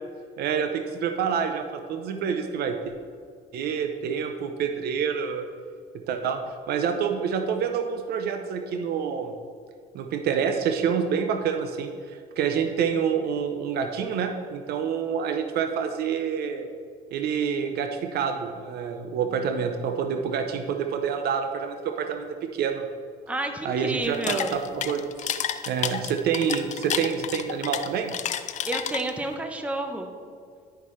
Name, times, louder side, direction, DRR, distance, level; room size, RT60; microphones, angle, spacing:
voice 1, 0.4-2.8 3.5-5.4 6.1-6.4 6.7-9.3 9.9-16.7 17.1-22.9 23.6-25.1 25.7-28.1, right 7 dB, 70° right, 6 dB, 0.6 m, -27 dB
voice 2, 23.3-24.6 28.7-30.1, right 2 dB, 10° right, 5 dB, 0.7 m, -30 dB
sound 1, 24.0-29.3, left 9 dB, 45° left, 0.4 m, -30 dB
10.0 x 5.6 x 3.1 m, 2.2 s
cardioid pair, 110°, 17 cm